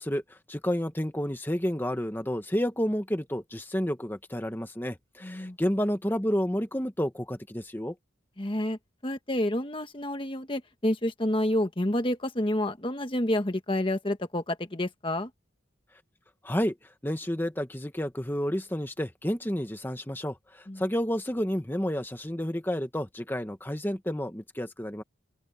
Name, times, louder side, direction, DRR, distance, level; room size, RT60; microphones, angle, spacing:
voice 1, 0.0-8.0 16.4-16.7 17.0-25.0, equal, 10° left, 1.3 m, -30 dB
voice 2, 5.2-5.6 8.4-15.3 20.7-20.8, left 1 dB, 25° left, 1.3 m, -29 dB
open air
head